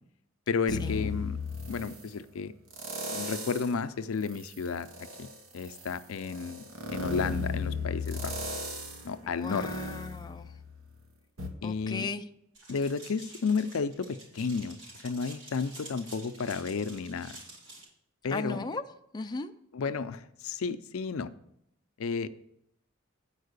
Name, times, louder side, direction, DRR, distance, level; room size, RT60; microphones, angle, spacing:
voice 1, 0.5-1.4 1.7-2.5 3.1-4.9 5.2-5.3 5.5-6.6 6.9-8.3 9.0-9.7 11.6-12.1 12.7-14.8 15.0-17.4 18.2-18.7 19.7-21.3 22.0-22.3, left 5 dB, 80° left, 12 dB, 0.5 m, -32 dB
sound 1, 0.7-2.1 2.7-3.8 4.2-10.9 11.4-11.5, left 2 dB, 85° right, 1.3 m, -36 dB
voice 2, 9.2-10.5 11.6-12.2 18.3-18.8 19.1-19.5, left 3 dB, 20° left, 6 dB, 0.3 m, -36 dB
sound 2, 12.5-17.8, right 2 dB, 65° right, 3.4 m, -49 dB
8.9 x 4.7 x 6.6 m, 0.76 s
head